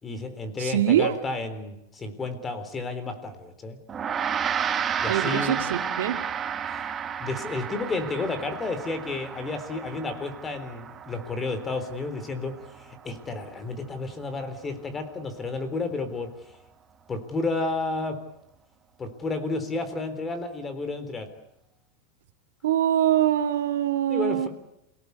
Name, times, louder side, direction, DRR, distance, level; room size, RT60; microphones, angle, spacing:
voice 1, 0.0-3.8 5.0-5.6 7.2-16.3 17.1-18.2 19.0-21.3 24.1-24.5, left 3 dB, 15° left, 10 dB, 3.8 m, -31 dB
voice 2, 0.6-1.2 5.1-6.2 22.6-24.5, right 11 dB, 85° right, 5 dB, 2.2 m, -23 dB
Gong, 3.9-13.5, right 7 dB, 20° right, 1.4 m, -32 dB
28.5 x 18.5 x 8.3 m, 0.85 s
supercardioid pair, 150°, 0 cm